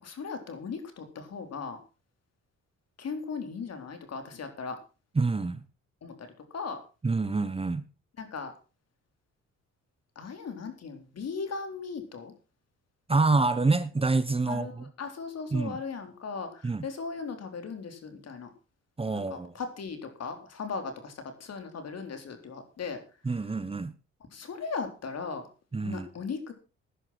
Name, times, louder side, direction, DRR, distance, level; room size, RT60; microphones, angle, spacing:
voice 1, 0.0-1.8 3.0-4.8 6.0-6.8 8.2-8.5 10.2-12.3 14.5-18.5 19.1-23.0 24.3-25.5 25.8-26.5, left 5 dB, 55° left, 7 dB, 4.1 m, -38 dB
voice 2, 5.1-5.6 7.0-7.8 13.1-14.9 15.5-15.8 16.6-16.9 19.0-19.5 23.2-23.9 25.7-26.1, right 3 dB, 20° right, 14 dB, 1.1 m, -27 dB
16.0 x 11.0 x 4.3 m, 0.32 s
cardioid pair, 90°, 30 cm